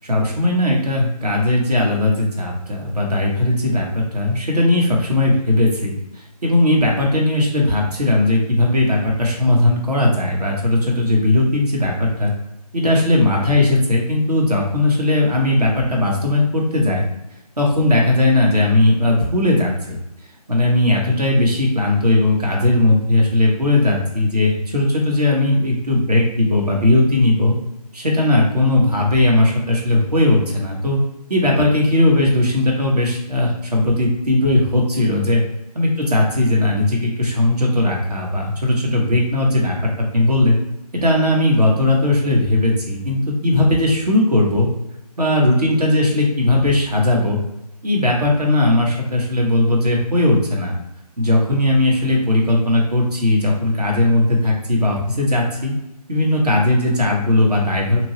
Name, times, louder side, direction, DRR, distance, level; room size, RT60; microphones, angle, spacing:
voice 1, 0.0-12.3 12.7-17.0 17.6-20.0 20.5-27.5 27.9-31.0 31.3-35.4 35.7-40.6 40.9-44.7 45.2-47.4 47.8-50.7 51.2-55.7 56.1-58.0, left 1 dB, 70° right, -1 dB, 1.0 m, -17 dB
2.9 x 2.3 x 2.9 m, 0.89 s
figure-of-eight pair, 155°, 21 cm